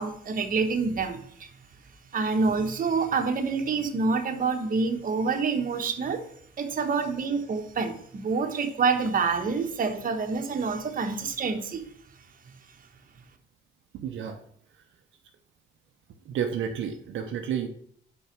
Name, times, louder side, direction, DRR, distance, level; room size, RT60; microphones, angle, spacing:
voice 1, 0.0-1.5 2.1-6.2 6.6-11.8, right 4 dB, 45° right, 5 dB, 1.2 m, -27 dB
voice 2, 13.9-14.4 16.3-17.7, right 8 dB, 75° right, 4 dB, 0.8 m, -31 dB
5.5 x 4.9 x 6.0 m, 0.64 s
cardioid pair, 90°, 20 cm